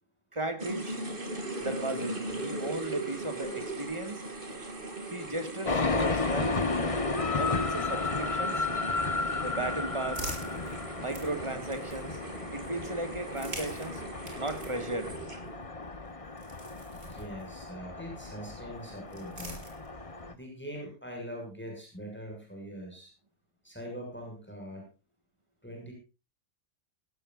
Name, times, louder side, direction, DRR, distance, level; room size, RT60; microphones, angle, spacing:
voice 1, 0.3-1.0 1.6-4.2 5.1-6.6 7.3-8.7 9.4-10.3 11.0-12.2 12.5-14.0 14.4-15.2, right 2 dB, 25° right, 8 dB, 2.2 m, -35 dB
sound 1, 0.6-15.7, right 2 dB, 45° right, 2.8 m, -40 dB
sound 2, 5.6-20.3, left 3 dB, 25° left, 1.3 m, -33 dB
sound 3, 9.4-12.3 13.2-17.8 18.7-20.2, right 1 dB, 80° right, 5.8 m, -46 dB
voice 2, 17.1-19.6 20.3-23.1 23.6-24.8 25.6-25.9, equal, 10° left, 1 dB, 6.8 m, -42 dB
18.0 x 17.5 x 2.6 m, 0.30 s
omnidirectional pair, 1.3 m